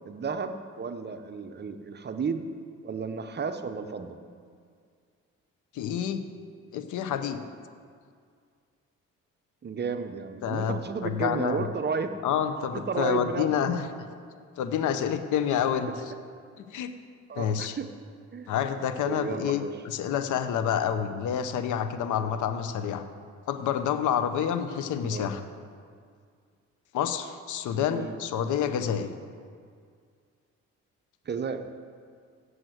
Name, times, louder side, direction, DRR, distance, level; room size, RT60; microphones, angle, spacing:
voice 1, 0.1-2.5 2.8-4.2 9.6-12.1 12.7-13.7 15.5-15.6 17.3-17.9 18.3-18.5 19.1-19.7 25.0-25.3 27.9-28.1 31.3-31.6, right 5 dB, 35° right, 8 dB, 0.7 m, -33 dB
voice 2, 5.7-6.2 6.7-7.4 10.4-11.7 12.2-13.9 14.6-16.1 16.6-16.9 17.3-17.8 18.5-23.0 23.5-25.4 26.9-29.1, left 8 dB, 80° left, 9 dB, 0.8 m, -28 dB
7.8 x 7.8 x 7.8 m, 2.2 s
cardioid pair, 90°, 30 cm